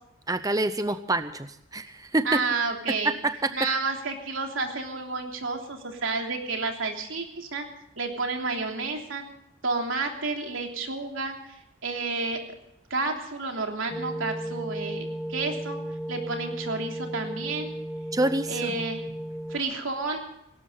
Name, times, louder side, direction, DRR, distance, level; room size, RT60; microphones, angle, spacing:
voice 1, 0.3-2.4 3.0-3.5 18.1-18.8, right 2 dB, 20° right, 11 dB, 0.6 m, -27 dB
voice 2, 2.3-3.2 3.5-7.7 8.0-9.2 9.6-12.4 12.9-15.8 16.1-17.7 18.5-19.1 19.5-20.2, right 3 dB, 85° right, 2 dB, 3.3 m, -30 dB
sound 1, 13.9-19.6, right 1 dB, ahead, 1.4 m, -35 dB
18.5 x 17.5 x 3.9 m, 0.79 s
head